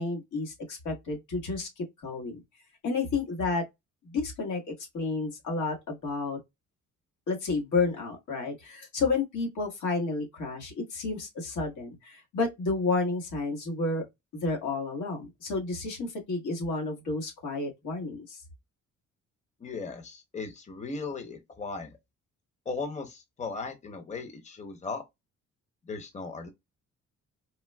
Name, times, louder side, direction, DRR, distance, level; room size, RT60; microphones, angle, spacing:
voice 1, 0.0-2.4 2.8-3.6 4.0-6.4 7.3-14.0 14.3-18.4, left 3 dB, 80° left, 1.5 m, -31 dB
voice 2, 19.6-21.9 22.7-25.0 25.9-26.5, left 4 dB, 25° left, 0.8 m, -37 dB
4.3 x 2.1 x 2.2 m
cardioid pair, 90°, 30 cm